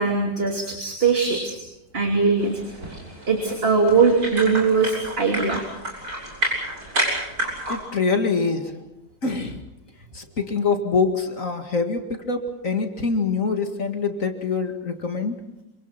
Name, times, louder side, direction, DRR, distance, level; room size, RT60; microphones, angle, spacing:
voice 1, 0.0-1.6 1.9-2.6 3.3-5.6, right 4 dB, 30° right, 2 dB, 3.1 m, -20 dB
sound 1, 2.4-7.8, right 1 dB, 50° right, 8.0 m, -30 dB
voice 2, 7.7-8.8 9.2-9.6 10.1-15.4, left 4 dB, 45° left, 5 dB, 2.4 m, -25 dB
27.0 x 25.5 x 6.0 m, 0.91 s
omnidirectional pair, 2.0 m